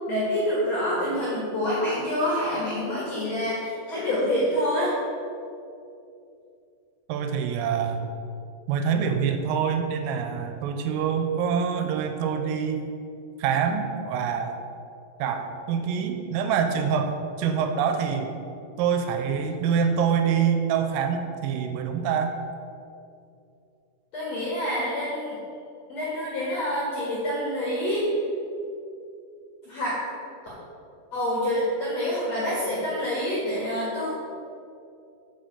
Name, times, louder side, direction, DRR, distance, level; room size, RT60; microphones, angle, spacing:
voice 1, 0.1-4.9 24.1-25.4 25.9-28.1 29.6-30.0 31.1-34.1, equal, 60° left, -7 dB, 1.8 m, -27 dB
voice 2, 7.1-8.1 8.7-12.9 13.4-14.6 15.2-18.3 18.8-22.4, right 7 dB, 90° right, 6 dB, 3.3 m, -25 dB
7.7 x 5.7 x 6.8 m, 2.6 s
omnidirectional pair, 5.9 m